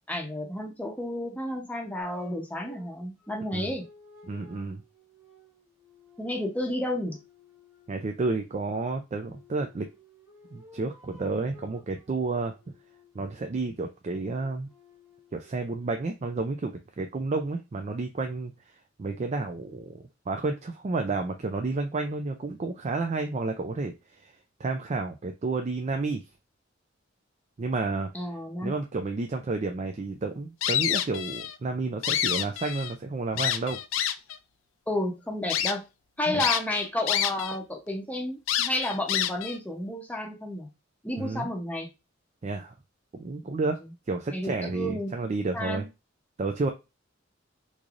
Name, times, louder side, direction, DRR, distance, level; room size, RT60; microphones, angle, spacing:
voice 1, 0.1-3.8 6.2-7.2 28.1-28.7 34.9-35.8 36.2-40.7 41.0-41.9 43.8-43.9 44.3-45.3 45.5-45.9, left 1 dB, 10° left, 2 dB, 0.7 m, -31 dB
sound 1, 2.0-8.0 9.2-13.6 14.1-15.9, left 1 dB, 20° right, 1.7 m, -54 dB
voice 2, 4.3-4.8 7.9-9.9 10.5-12.6 13.1-14.7 15.3-18.5 19.0-24.3 24.6-26.2 27.6-28.1 28.6-33.8 36.3-36.4 41.2-41.5 42.4-42.7 43.1-43.8 44.1-45.8 46.4-46.7, right 3 dB, 35° right, 5 dB, 0.4 m, -31 dB
sound 2, 30.6-31.5 31.9-32.9 33.4-34.4 34.9-35.0 35.5-35.7 36.4-37.6 37.9-38.0 38.5-39.6, left 10 dB, 80° left, 0.4 m, -27 dB
3.8 x 3.2 x 2.5 m, 0.26 s
head